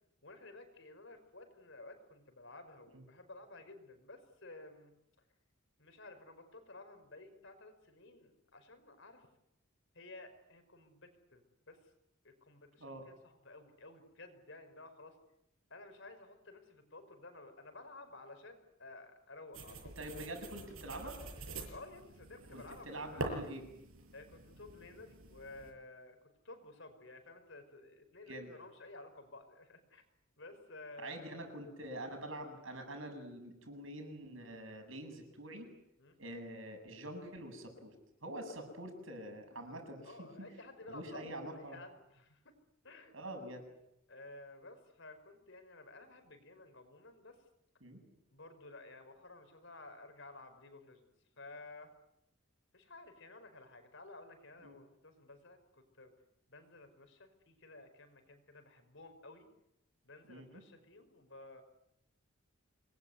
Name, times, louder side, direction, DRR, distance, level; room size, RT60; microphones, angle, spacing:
voice 1, 0.2-5.0 5.8-9.3 9.9-11.8 12.2-15.2 15.7-19.9 21.7-23.3 24.1-26.2 26.4-30.0 30.4-31.4 36.0-36.2 40.0-41.3 41.7-42.5 42.8-43.2 44.1-47.4 48.3-51.1 51.4-51.9 52.7-56.1 56.5-59.5 60.0-61.6, left 2 dB, 60° left, 7 dB, 5.4 m, -54 dB
sound 1, 19.5-25.7, right 2 dB, 90° right, 7.2 m, -46 dB
voice 2, 20.0-21.2 22.5-23.6 28.3-28.5 31.0-35.7 36.2-37.9 38.2-40.5 40.9-41.8 43.1-43.7 47.8-48.0 54.6-54.8 60.3-60.6, right 1 dB, 70° right, 5 dB, 7.8 m, -45 dB
27.0 x 21.5 x 9.6 m, 0.82 s
head